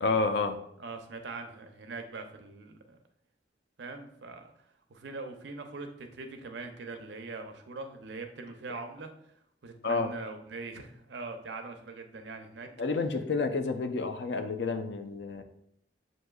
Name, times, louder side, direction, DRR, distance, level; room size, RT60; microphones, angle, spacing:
voice 1, 0.0-0.6 9.8-10.1 12.8-15.4, left 3 dB, 75° left, 6 dB, 0.5 m, -29 dB
voice 2, 0.8-3.0 3.8-4.5 4.9-9.1 9.6-12.7, right 3 dB, 85° right, 6 dB, 0.6 m, -42 dB
7.5 x 2.6 x 2.3 m, 0.71 s
head